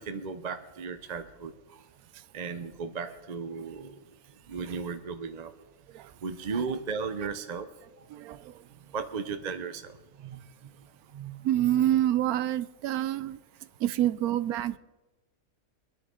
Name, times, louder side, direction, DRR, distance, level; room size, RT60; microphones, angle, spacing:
voice 1, 0.0-1.5 2.3-4.0 4.5-5.5 6.2-7.7 8.9-9.9 10.2-10.4 11.1-11.4, right 5 dB, 45° right, 0.6 m, -35 dB
voice 2, 8.1-8.5 11.4-13.4 13.8-14.8, right 12 dB, 80° right, 1.1 m, -27 dB
25.0 x 10.0 x 3.7 m
omnidirectional pair, 1.6 m